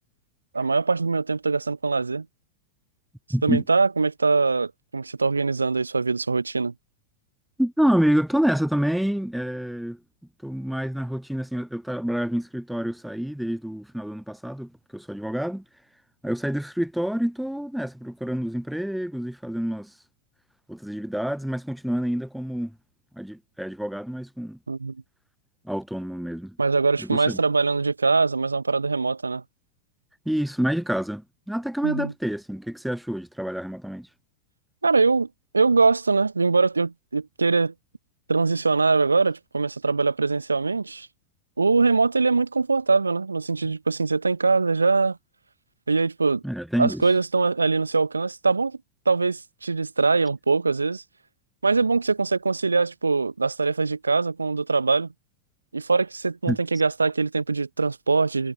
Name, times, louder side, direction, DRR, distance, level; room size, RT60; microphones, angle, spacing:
voice 1, 0.5-2.3 3.4-6.7 24.7-25.0 26.6-29.4 31.8-32.1 34.8-35.3 35.5-37.7 38.3-41.1 41.6-45.2 45.9-46.4 46.8-48.8 49.1-51.0 51.6-55.1 55.7-58.5, right 4 dB, 80° right, 0.8 m, -22 dB
voice 2, 3.3-3.6 7.6-10.0 10.4-15.6 16.2-19.9 20.7-22.7 23.2-24.6 25.7-26.5 27.1-27.4 30.3-31.2 31.5-34.1 46.4-47.0 56.5-56.6, equal, ahead, 0.4 m, -27 dB
figure-of-eight pair, 90°, 0 cm